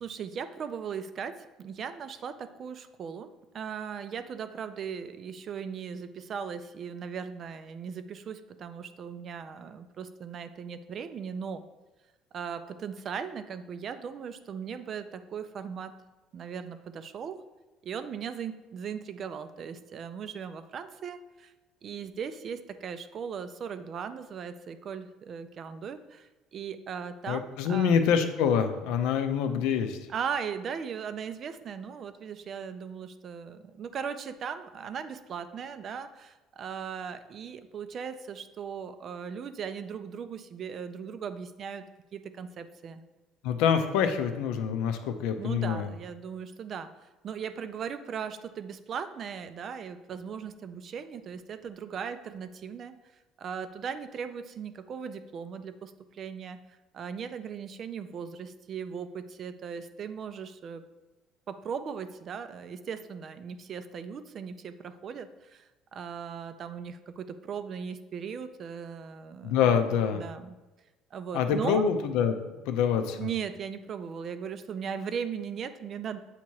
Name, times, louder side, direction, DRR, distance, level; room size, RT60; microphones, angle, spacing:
voice 1, 0.0-3.3 3.5-11.6 12.3-15.9 16.3-17.4 17.8-21.5 21.8-28.0 30.1-41.9 42.1-43.0 45.4-46.9 47.2-53.0 53.4-56.6 56.9-60.8 61.5-69.8 70.1-70.6 71.1-71.9 73.2-76.2, right 7 dB, 35° right, 11 dB, 0.3 m, -38 dB
voice 2, 27.3-30.0 43.4-45.9 69.4-70.2 71.3-72.4 72.7-73.3, left 7 dB, 75° left, 7 dB, 0.6 m, -26 dB
8.2 x 2.9 x 4.6 m, 1.1 s
cardioid pair, 170°, 0 cm